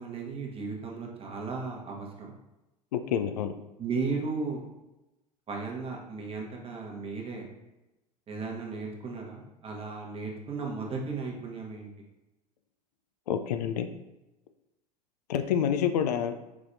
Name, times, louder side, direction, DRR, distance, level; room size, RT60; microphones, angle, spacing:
voice 1, 0.0-2.3 3.0-3.1 3.8-4.6 5.5-7.5 8.3-11.9, right 4 dB, 25° right, -1 dB, 1.1 m, -35 dB
voice 2, 2.9-3.5 13.3-13.9 15.3-16.3, left 8 dB, 70° left, 8 dB, 0.4 m, -28 dB
4.9 x 4.0 x 2.6 m, 0.98 s
figure-of-eight pair, 80°, 21 cm